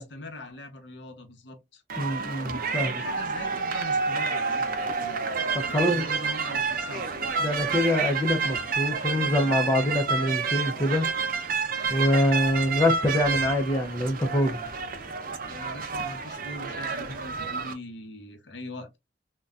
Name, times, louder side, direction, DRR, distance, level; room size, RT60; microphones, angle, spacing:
voice 1, 0.0-1.8 2.7-5.3 5.7-7.1 15.5-19.0, left 2 dB, 90° left, 0.8 m, -41 dB
sound 1, 1.9-17.7, right 5 dB, 55° right, 0.6 m, -29 dB
voice 2, 2.0-2.9 5.5-6.0 7.4-11.1 11.9-14.6, left 1 dB, 15° left, 0.5 m, -25 dB
3.9 x 2.2 x 2.3 m
head